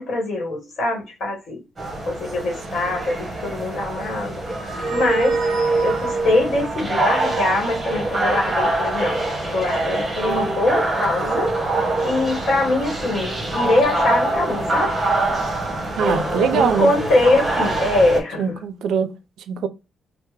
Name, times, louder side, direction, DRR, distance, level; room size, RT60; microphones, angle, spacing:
voice 1, 0.0-1.6 2.1-4.3 4.6-5.4 5.8-9.2 9.5-11.5 12.0-15.0 16.0-18.6, left 2 dB, 50° left, 1.2 m, -22 dB
sound 1, 1.8-18.2, right 2 dB, 15° right, 1.0 m, -24 dB
voice 2, 16.0-16.9 18.4-19.1 19.5-19.7, right 7 dB, 90° right, 0.4 m, -22 dB
3.2 x 2.0 x 3.1 m
cardioid pair, 170°, 0 cm